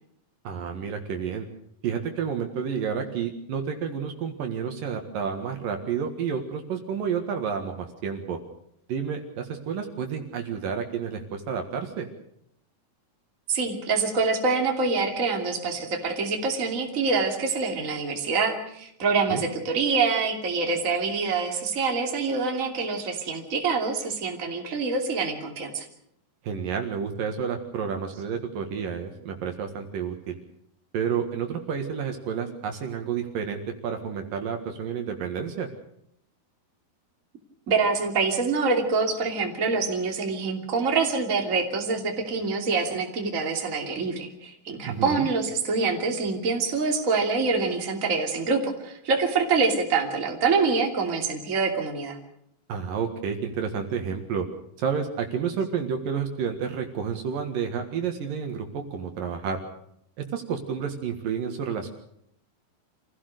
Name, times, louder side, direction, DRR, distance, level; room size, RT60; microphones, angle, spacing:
voice 1, 0.4-1.5 1.8-8.4 8.9-12.1 19.3-19.4 26.4-30.4 30.9-35.7 44.8-45.3 52.7-54.5 54.8-59.6 60.3-61.9, right 7 dB, 65° right, 5 dB, 3.2 m, -30 dB
voice 2, 13.5-25.9 37.7-52.2, right 4 dB, 20° right, 2 dB, 2.7 m, -25 dB
27.0 x 16.5 x 6.7 m, 0.73 s
omnidirectional pair, 4.5 m